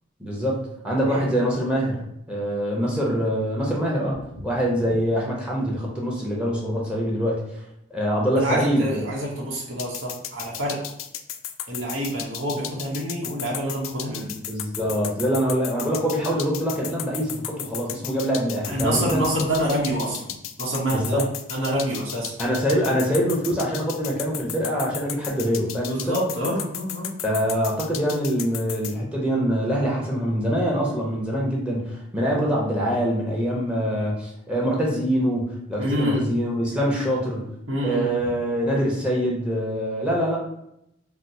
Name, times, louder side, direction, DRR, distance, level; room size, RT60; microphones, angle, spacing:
voice 1, 0.2-7.6 7.9-9.1 14.5-19.2 20.9-21.3 22.4-26.2 27.2-37.4 37.8-40.4, equal, 5° right, -3 dB, 0.6 m, -24 dB
voice 2, 8.4-10.8 11.7-14.3 18.7-20.2 20.6-22.3 25.9-27.1 35.8-36.3 37.7-38.1, right 1 dB, 90° right, -4 dB, 0.9 m, -27 dB
sound 1, 9.8-28.9, left 11 dB, 90° left, 0.3 m, -34 dB
4.3 x 2.0 x 2.6 m, 0.78 s
head